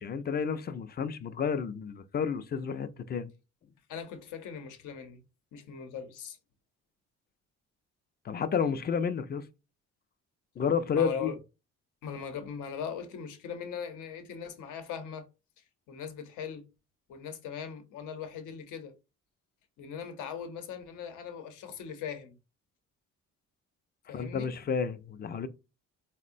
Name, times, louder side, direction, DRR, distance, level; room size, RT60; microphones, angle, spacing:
voice 1, 0.0-3.3 8.2-9.5 10.6-11.3 24.1-25.5, left 6 dB, 35° left, 0.4 m, -31 dB
voice 2, 3.9-5.2 5.5-6.4 10.9-11.4 12.0-15.3 15.6-16.6 17.1-18.9 19.8-22.4 24.1-24.5, left 7 dB, 80° left, 0.7 m, -40 dB
3.5 x 2.1 x 2.5 m
cardioid pair, 90°, 30 cm